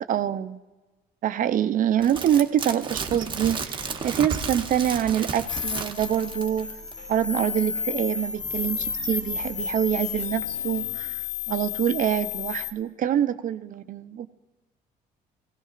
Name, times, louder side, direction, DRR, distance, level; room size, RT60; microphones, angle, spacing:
voice 1, 0.1-0.6 1.2-6.7 7.1-14.3, right 10 dB, 50° right, 11 dB, 0.5 m, -25 dB
sound 1, 2.0-6.6 6.9-7.0, right 5 dB, 30° right, 0.9 m, -33 dB
sound 2, 3.1-11.0, right 1 dB, 80° left, 4.4 m, -47 dB
sound 3, 5.5-12.7, left 7 dB, 45° left, 0.9 m, -32 dB
19.5 x 16.5 x 2.5 m, 1.2 s
cardioid pair, 110°, 17 cm